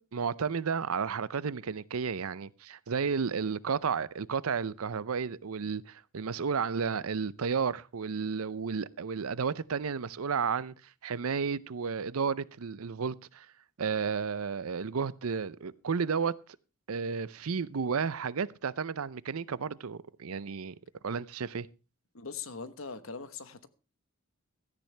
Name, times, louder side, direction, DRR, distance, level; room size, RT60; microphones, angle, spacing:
voice 1, 0.1-10.7 11.0-13.5 13.8-16.3 16.9-20.7 21.0-21.7, right 5 dB, 90° right, 0.6 m, -32 dB
voice 2, 22.1-23.7, left 5 dB, 75° left, 1.2 m, -41 dB
16.5 x 13.5 x 3.4 m
head